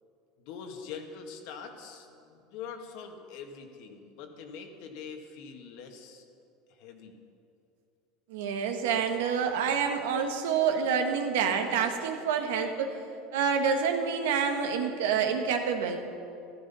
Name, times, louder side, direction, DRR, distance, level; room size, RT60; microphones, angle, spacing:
voice 1, 0.4-6.2 6.7-7.2, left 6 dB, 65° left, 4 dB, 1.9 m, -44 dB
voice 2, 8.3-13.0 13.3-16.0, right 6 dB, 85° right, 5 dB, 1.6 m, -27 dB
14.5 x 13.0 x 5.6 m, 2.5 s
supercardioid pair, 130°, 0 cm